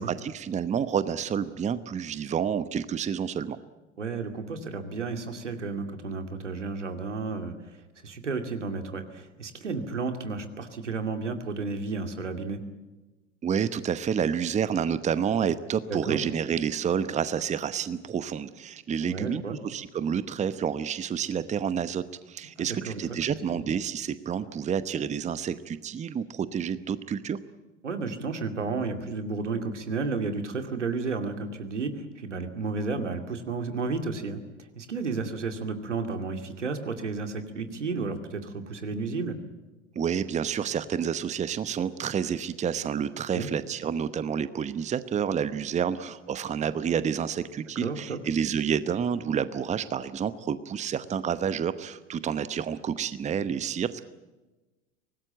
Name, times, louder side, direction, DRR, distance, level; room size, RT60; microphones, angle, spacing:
voice 1, 0.0-3.6 13.4-27.4 39.9-54.1, right 7 dB, 20° right, 14 dB, 0.9 m, -29 dB
voice 2, 4.0-7.5 8.0-12.6 15.9-16.2 19.0-19.6 22.6-23.0 23.5-23.6 27.8-34.4 34.8-39.4 43.3-43.5 47.8-48.2, right 4 dB, 80° right, 7 dB, 2.5 m, -32 dB
24.5 x 19.0 x 9.0 m, 1.1 s
figure-of-eight pair, 80°, 35 cm